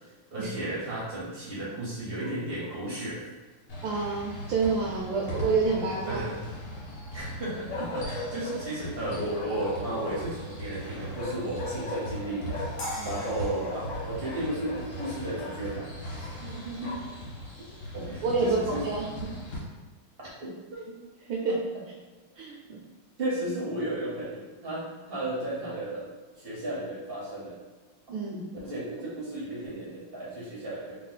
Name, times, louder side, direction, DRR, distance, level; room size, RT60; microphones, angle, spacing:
voice 1, 0.3-3.2 6.0-6.4 7.1-12.7 13.0-15.9 16.2-16.3 17.9-18.8 20.4-20.5 21.5-21.6 23.2-26.1 26.4-27.6 28.6-31.0, right 1 dB, 50° right, -7 dB, 0.7 m, -34 dB
Bark, 2.2-2.8 5.3-6.4 7.7-8.6 9.3-10.4 11.1-12.9 13.1-15.6 16.2-17.2, left 2 dB, 85° left, 0.6 m, -39 dB
sound 1, 3.7-19.6, equal, 50° left, 1.4 m, -39 dB
voice 2, 3.8-6.3 12.9-13.2 16.4-17.1 18.2-19.1 21.3-21.6 22.4-22.8 28.1-28.5, right 4 dB, 75° right, -2 dB, 1.2 m, -29 dB
sound 2, 12.8-15.8, equal, 65° left, 1.3 m, -41 dB
3.5 x 2.3 x 3.9 m, 1.3 s
omnidirectional pair, 2.4 m